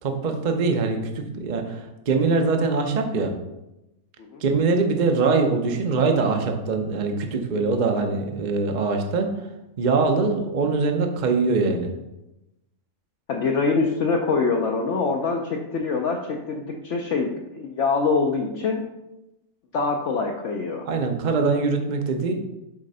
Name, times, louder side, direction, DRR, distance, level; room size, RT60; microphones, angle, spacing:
voice 1, 0.0-3.3 4.4-9.5 9.8-11.9 20.8-22.3, right 4 dB, 40° right, 4 dB, 0.7 m, -23 dB
voice 2, 13.3-18.8 19.7-20.9, left 4 dB, 60° left, 1 dB, 0.9 m, -24 dB
7.5 x 3.7 x 5.4 m, 0.95 s
omnidirectional pair, 1.6 m